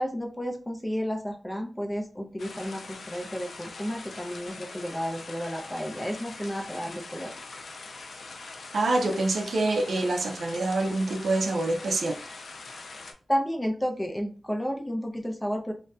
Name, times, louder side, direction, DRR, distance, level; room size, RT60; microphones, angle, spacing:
voice 1, 0.0-7.3 13.3-15.7, equal, 10° left, 0.5 m, -32 dB
sound 1, 2.4-13.1, left 3 dB, 70° left, 0.4 m, -43 dB
voice 2, 8.7-12.2, right 2 dB, 80° right, 0.5 m, -26 dB
2.7 x 2.1 x 2.2 m
wide cardioid pair, 130°, 0 cm